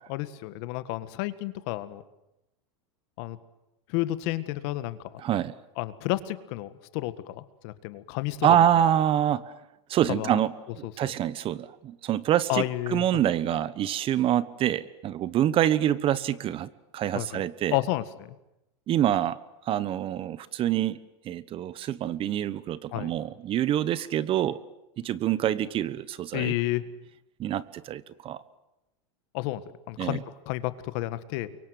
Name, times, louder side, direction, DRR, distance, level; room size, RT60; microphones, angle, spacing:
voice 1, 0.1-2.0 3.2-3.4 3.9-5.2 5.8-8.6 10.1-10.4 10.8-11.1 12.5-13.2 17.1-17.4 17.7-18.4 22.9-23.1 26.3-26.8 29.3-31.6, left 16 dB, 60° left, 13 dB, 1.7 m, -31 dB
voice 2, 5.2-5.5 8.4-9.5 9.9-12.6 12.9-17.8 18.9-19.4 19.7-21.0 21.2-24.6 25.0-26.5 27.4-28.4 30.0-30.2, right 11 dB, 35° right, 17 dB, 1.1 m, -26 dB
29.5 x 23.5 x 7.9 m, 0.91 s
supercardioid pair, 125°, 16 cm